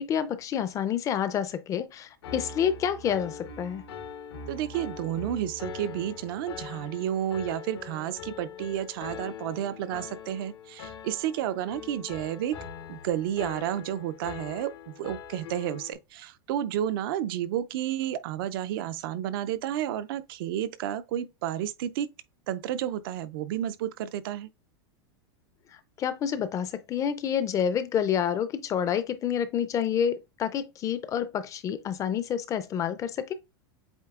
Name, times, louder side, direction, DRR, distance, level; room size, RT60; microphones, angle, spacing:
voice 1, 0.0-3.8 26.0-33.3, left 8 dB, 25° left, 0.4 m, -28 dB
Piano, 2.2-15.9, left 6 dB, 85° left, 1.0 m, -42 dB
voice 2, 4.5-12.6 12.9-22.1 22.5-24.5, right 11 dB, 65° right, 0.4 m, -31 dB
8.0 x 2.7 x 2.4 m
supercardioid pair, 135°, 13 cm